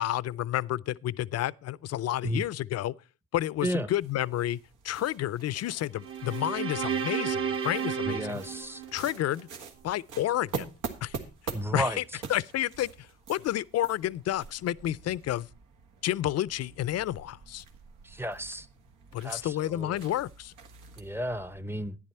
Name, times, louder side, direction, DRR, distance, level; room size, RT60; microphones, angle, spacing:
voice 1, 0.0-2.9 3.3-4.6 4.8-8.4 8.9-9.5 9.8-10.7 11.0-11.2 11.7-12.0 12.3-12.9 13.3-15.5 16.0-17.6 19.1-20.5, left 13 dB, 55° left, 0.5 m, -30 dB
sound 1, 4.0-21.6, right 5 dB, 90° right, 1.7 m, -45 dB
sound 2, 6.0-9.4, right 7 dB, 45° right, 1.0 m, -32 dB
voice 2, 8.1-8.8 11.5-12.0 18.1-18.7 19.2-20.0 21.0-22.0, right 1 dB, 10° right, 0.7 m, -33 dB
11.0 x 10.0 x 4.3 m
cardioid pair, 90°, 30 cm